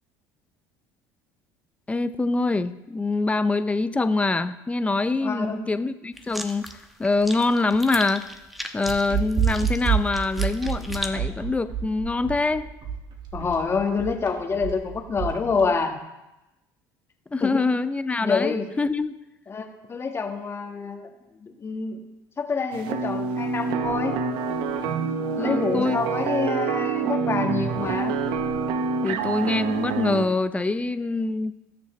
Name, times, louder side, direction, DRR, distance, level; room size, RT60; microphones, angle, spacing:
voice 1, 1.9-6.7 7.0-8.3 8.7-12.7 17.3-19.2 25.4-26.0 29.0-31.5, left 3 dB, 15° left, 12 dB, 0.6 m, -24 dB
voice 2, 5.2-5.6 13.3-16.0 17.4-17.6 18.2-18.7 19.5-21.1 21.4-22.0 22.4-24.2 25.4-28.1, left 4 dB, 30° left, 3 dB, 1.6 m, -27 dB
sound 1, 6.1-11.1, equal, ahead, 1.1 m, -38 dB
sound 2, 8.8-15.7, right 8 dB, 55° right, 2.1 m, -28 dB
sound 3, 22.7-30.3, right 5 dB, 70° right, 0.8 m, -27 dB
17.5 x 6.9 x 3.3 m, 0.98 s
supercardioid pair, 90°, 9 cm